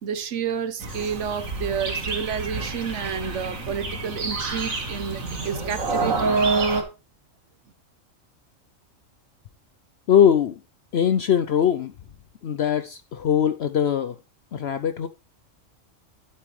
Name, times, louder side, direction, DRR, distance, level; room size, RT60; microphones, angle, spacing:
voice 1, 0.0-6.4, right 7 dB, 65° right, 1.2 m, -30 dB
sound 1, 0.8-6.8, right 3 dB, 85° right, 2.2 m, -27 dB
voice 2, 10.1-10.6 10.9-11.9 12.4-14.2 14.5-15.1, left 9 dB, 60° left, 0.8 m, -21 dB
11.5 x 7.8 x 3.2 m
omnidirectional pair, 1.4 m